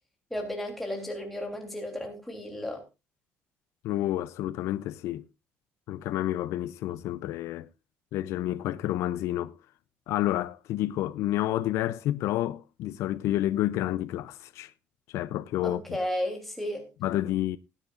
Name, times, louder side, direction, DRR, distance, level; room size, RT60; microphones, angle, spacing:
voice 1, 0.3-2.8 15.6-16.9, left 1 dB, 5° left, 3.2 m, -33 dB
voice 2, 3.8-5.2 5.9-7.7 8.1-9.6 10.1-14.7 15.1-15.8 17.0-17.6, left 14 dB, 75° left, 0.6 m, -29 dB
18.0 x 10.0 x 2.5 m
cardioid pair, 170°, 5 cm